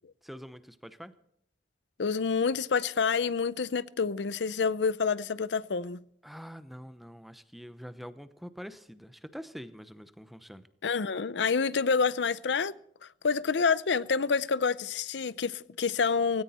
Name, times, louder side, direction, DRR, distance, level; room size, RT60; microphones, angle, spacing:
voice 1, 0.2-1.1 6.2-10.7, equal, ahead, 0.8 m, -45 dB
voice 2, 2.0-6.0 10.8-12.7 13.2-16.4, left 5 dB, 85° left, 0.6 m, -28 dB
18.0 x 17.5 x 4.3 m
head